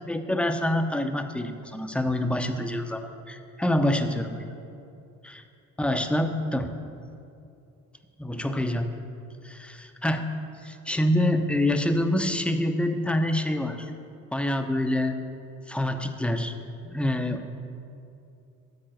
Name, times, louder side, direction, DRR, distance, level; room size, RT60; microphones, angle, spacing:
voice 1, 0.0-4.4 5.2-5.4 5.8-6.7 8.2-8.9 9.4-10.3 10.6-13.9 14.3-15.1 15.7-16.6 16.8-17.4, left 1 dB, 5° left, 6 dB, 0.6 m, -26 dB
9.0 x 4.5 x 7.5 m, 2.6 s
hypercardioid pair, 55°, 42 cm